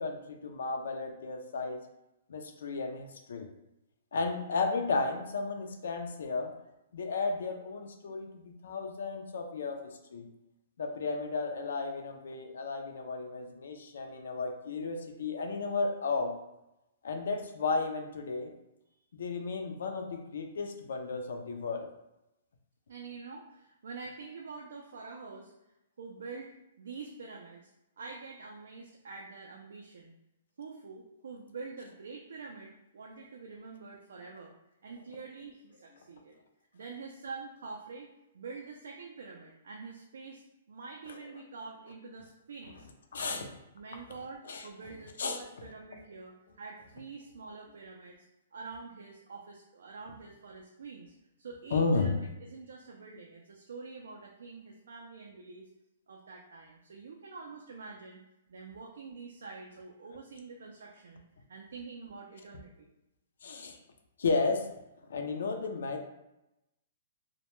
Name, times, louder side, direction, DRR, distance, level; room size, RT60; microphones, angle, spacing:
voice 1, 0.0-1.8 2.3-3.5 4.1-6.5 6.9-10.3 10.8-16.3 17.0-18.5 19.1-21.9 43.1-43.4 44.4-44.6 45.2-45.4 51.7-52.2 63.4-63.8 64.2-64.7 65.1-66.0, left 4 dB, 70° left, 4 dB, 0.3 m, -33 dB
voice 2, 22.9-25.5 26.0-27.7 28.0-30.1 30.6-34.5 34.8-36.4 36.7-42.9 43.2-43.5 43.7-48.3 48.5-55.7 56.1-58.2 58.5-61.2 61.5-62.9, right 4 dB, 80° right, -1 dB, 0.3 m, -46 dB
2.1 x 2.1 x 2.9 m, 0.91 s
hypercardioid pair, 180°, 0 cm